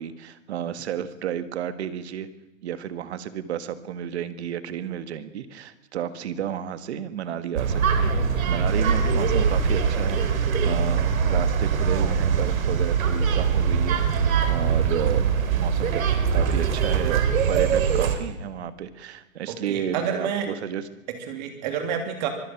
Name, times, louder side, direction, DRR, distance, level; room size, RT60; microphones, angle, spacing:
voice 1, 0.0-2.3 2.6-16.0 16.3-17.2 17.5-20.8, right 9 dB, 50° right, 12 dB, 1.6 m, -32 dB
sound 1, 7.6-18.2, right 6 dB, 80° right, 3.3 m, -22 dB
voice 2, 19.5-20.5 21.1-22.3, right 8 dB, 35° right, 5 dB, 3.1 m, -29 dB
24.5 x 18.5 x 6.0 m, 1.1 s
supercardioid pair, 180°, 40 cm